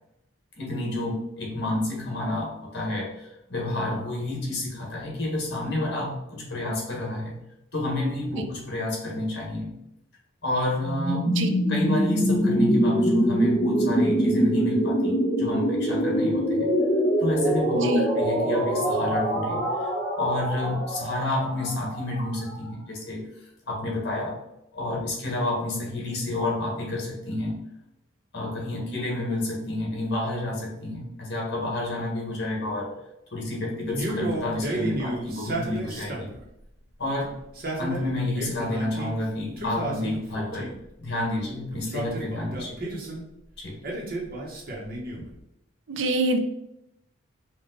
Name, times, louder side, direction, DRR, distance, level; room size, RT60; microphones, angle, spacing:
voice 1, 0.6-7.4 7.7-9.7 10.4-11.3 11.7-16.7 17.2-19.9 20.2-23.3 23.7-24.4 24.7-27.6 28.3-32.9 33.3-36.3 37.0-37.3 37.8-40.7 41.0-42.9 43.6-43.8, left 1 dB, 55° left, -2 dB, 1.6 m, -30 dB
sound 1, 10.8-22.6, equal, 15° left, 1.0 m, -24 dB
voice 2, 17.7-18.1 45.9-46.4, right 1 dB, 65° right, 6 dB, 0.6 m, -25 dB
Male speech man speaking, 33.9-36.4 37.4-39.1 39.6-40.8 41.7-43.2 43.8-45.3, right 2 dB, 50° right, 1.1 m, -32 dB
5.2 x 2.5 x 3.9 m, 0.83 s
head